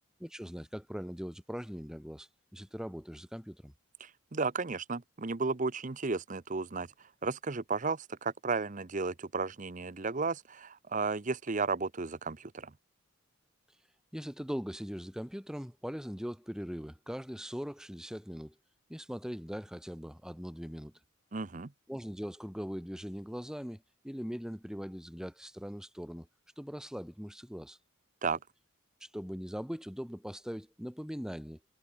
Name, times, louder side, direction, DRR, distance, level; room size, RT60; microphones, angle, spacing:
voice 1, 0.2-3.7 14.1-18.6 18.9-20.9 21.9-26.3 26.6-27.8 29.0-31.6, equal, 5° right, 1.8 m, -41 dB
voice 2, 4.0-6.9 7.2-12.7 21.3-21.7 28.2-28.4, right 4 dB, 35° right, 0.7 m, -34 dB
head